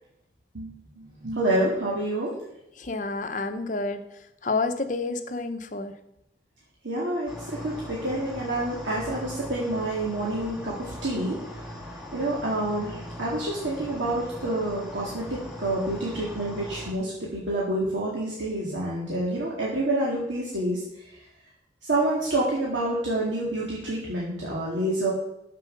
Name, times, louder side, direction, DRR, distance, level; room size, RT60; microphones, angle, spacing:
voice 1, 0.5-2.3 6.8-7.3 7.6-11.4 12.1-20.8 21.8-25.1, right 1 dB, 90° right, -5 dB, 2.2 m, -28 dB
voice 2, 2.8-4.0 4.4-6.0, left 3 dB, 45° left, 8 dB, 0.8 m, -29 dB
sound 1, 7.3-16.9, equal, 5° right, 2.2 m, -40 dB
8.9 x 7.6 x 6.5 m, 0.85 s
head